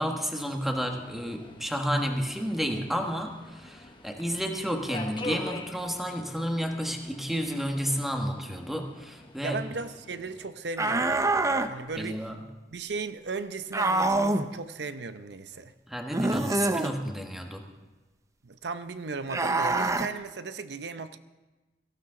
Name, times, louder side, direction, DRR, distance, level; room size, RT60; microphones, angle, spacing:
voice 1, 0.0-9.6 12.0-12.4 15.9-17.6, equal, ahead, 3 dB, 1.3 m, -31 dB
Subway metro underground, 0.6-10.5, left 2 dB, 30° left, 1.0 m, -45 dB
voice 2, 9.4-12.3 12.7-15.7 18.4-21.2, right 4 dB, 70° right, 11 dB, 0.7 m, -36 dB
sound 1, 10.8-11.7 13.7-14.5 16.1-16.9 19.3-20.1, right 2 dB, 20° right, 0.6 m, -25 dB
17.5 x 15.0 x 3.8 m, 1.2 s
head